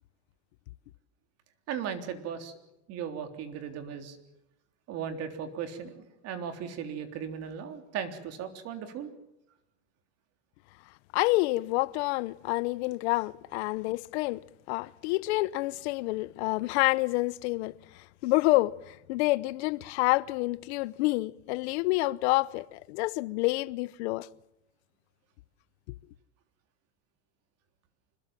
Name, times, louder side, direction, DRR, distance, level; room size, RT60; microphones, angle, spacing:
voice 1, 1.7-2.5 2.9-4.2 4.9-9.1, right 8 dB, 45° right, 3.6 m, -37 dB
voice 2, 11.1-24.3, left 21 dB, 70° left, 0.9 m, -28 dB
25.5 x 21.5 x 7.5 m
supercardioid pair, 140°, 34 cm